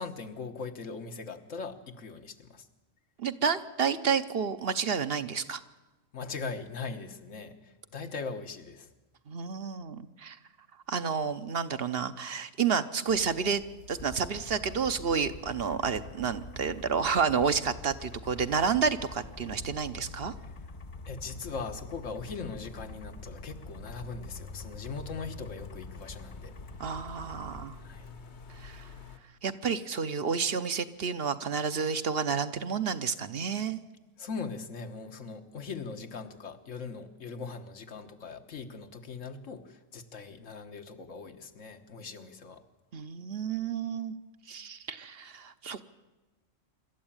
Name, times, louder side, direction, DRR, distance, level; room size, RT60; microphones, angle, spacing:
voice 1, 0.0-2.7 6.1-8.9 21.1-26.5 27.8-28.1 34.2-42.6, left 4 dB, 80° left, 7 dB, 1.7 m, -40 dB
voice 2, 3.2-5.6 9.3-10.4 10.9-13.6 13.9-20.3 26.8-27.8 28.6-28.9 29.4-33.8 42.9-44.1 44.5-45.8, right 6 dB, 55° right, 11 dB, 1.0 m, -30 dB
sound 1, 13.1-29.2, left 3 dB, 60° left, 1.4 m, -49 dB
sound 2, 14.0-27.7, left 2 dB, 30° left, 1.0 m, -47 dB
25.5 x 13.0 x 8.8 m, 1.1 s
omnidirectional pair, 1.3 m